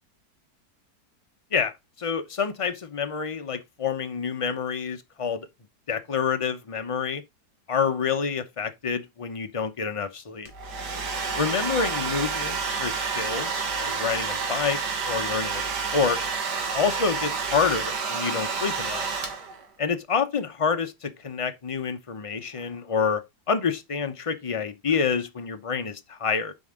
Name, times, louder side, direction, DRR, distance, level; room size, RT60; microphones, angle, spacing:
voice 1, 1.5-5.5 5.9-7.2 7.7-10.5 11.4-14.8 15.0-16.2 16.7-19.1 19.8-26.5, left 6 dB, 35° left, 0.5 m, -28 dB
Domestic sounds home sounds, 10.4-19.7, right 5 dB, 85° right, 2.1 m, -29 dB
7.5 x 5.3 x 3.7 m
omnidirectional pair, 1.8 m